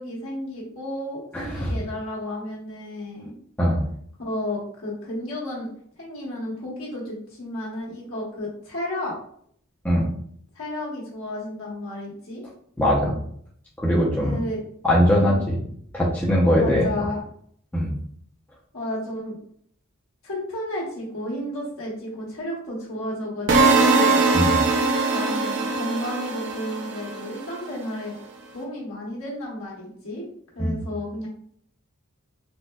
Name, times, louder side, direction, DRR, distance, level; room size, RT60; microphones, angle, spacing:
voice 1, 0.0-3.4 4.2-5.7 6.0-9.2 10.5-12.4 14.2-14.6 15.2-15.4 16.6-17.2 18.7-19.4 20.2-24.2 25.1-28.2 28.5-30.3 30.5-31.3, left 1 dB, 75° left, -5 dB, 1.2 m, -32 dB
voice 2, 1.3-1.7 3.6-3.8 9.8-10.0 12.8-13.2 13.8-14.3 14.8-15.6 15.9-16.9 17.7-17.9 24.3-24.6 30.6-30.8, equal, 5° left, -5 dB, 0.5 m, -20 dB
sound 1, 23.5-27.5, right 3 dB, 55° right, 0.5 m, -21 dB
4.0 x 2.2 x 2.2 m, 0.64 s
head